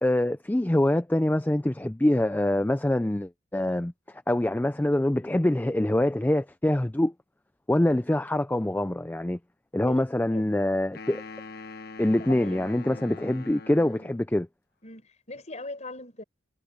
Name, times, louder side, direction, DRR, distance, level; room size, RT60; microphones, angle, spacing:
voice 1, 0.0-7.1 7.7-9.4 9.7-11.2 12.0-14.5, left 1 dB, 10° left, 0.4 m, -25 dB
sound 1, 10.9-14.3, left 3 dB, 55° left, 1.2 m, -43 dB
voice 2, 12.2-12.6 13.1-13.2 14.8-16.2, left 2 dB, 35° left, 5.7 m, -40 dB
head